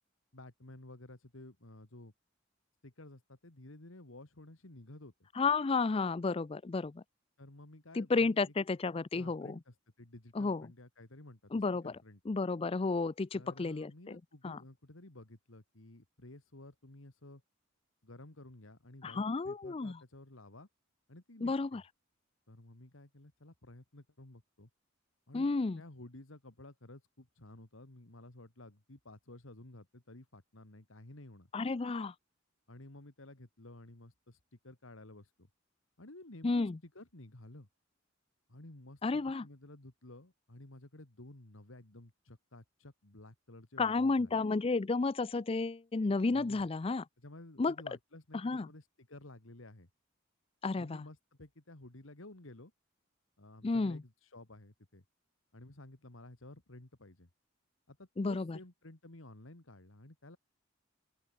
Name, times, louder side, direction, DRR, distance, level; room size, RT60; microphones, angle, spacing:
voice 1, 0.3-2.1 2.8-5.3 7.4-8.5 9.1-12.2 13.3-17.4 18.0-20.7 21.1-21.8 22.5-24.7 25.3-31.5 32.7-35.5 36.0-37.7 38.5-44.4 46.3-46.7 47.2-49.9 50.8-52.7 53.4-55.0 55.5-57.3 57.9-60.4, left 1 dB, 75° left, 2.3 m, -53 dB
voice 2, 5.4-7.0 7.9-9.6 10.3-10.7 11.5-11.9 12.3-14.6 19.0-20.0 21.4-21.8 25.3-25.8 31.5-32.1 36.4-36.8 39.0-39.4 43.8-47.0 47.6-47.7 48.3-48.7 50.6-51.0 53.6-54.0 58.2-58.6, left 3 dB, 30° left, 0.4 m, -32 dB
open air
head